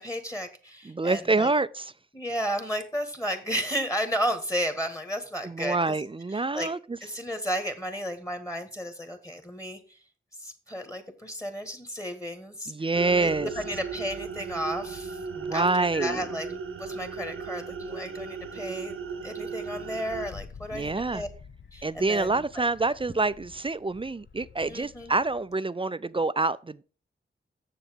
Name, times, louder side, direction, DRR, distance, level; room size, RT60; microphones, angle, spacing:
voice 1, 0.0-1.5 2.1-6.0 6.3-6.7 7.0-19.0 19.2-21.3 21.7-22.6 24.7-25.1, equal, 15° left, 1.7 m, -33 dB
voice 2, 0.9-1.8 5.4-6.8 12.7-13.5 15.4-16.2 20.7-21.2 21.8-26.8, right 3 dB, 25° right, 0.4 m, -26 dB
sound 1, 12.9-20.3, right 5 dB, 80° right, 1.0 m, -36 dB
Wind, 20.0-25.5, left 6 dB, 60° left, 0.8 m, -48 dB
7.1 x 6.9 x 5.2 m
cardioid pair, 45°, 21 cm